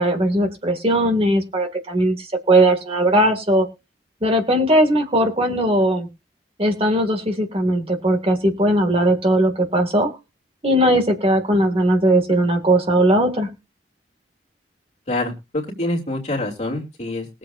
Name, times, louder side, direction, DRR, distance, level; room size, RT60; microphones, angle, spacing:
voice 1, 0.0-3.7 4.2-6.1 6.6-10.1 10.6-13.5, right 1 dB, 35° right, 3 dB, 2.1 m, -18 dB
voice 2, 15.1-17.3, left 2 dB, 40° left, -1 dB, 2.9 m, -26 dB
21.5 x 7.5 x 2.5 m, 0.28 s
head